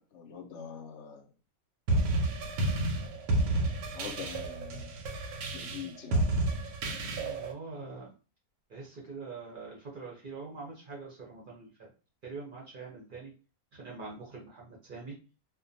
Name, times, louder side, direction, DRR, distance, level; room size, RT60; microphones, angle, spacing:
voice 1, 0.1-1.2 3.4-5.0 5.5-6.2, left 7 dB, 65° left, 3 dB, 0.8 m, -44 dB
sound 1, 1.9-7.5, right 2 dB, 85° right, 1.1 m, -30 dB
voice 2, 7.0-8.1 8.7-11.9 12.2-13.3 13.7-15.2, right 4 dB, 55° right, -2 dB, 0.6 m, -44 dB
2.4 x 2.2 x 2.6 m, 0.34 s
omnidirectional pair, 1.5 m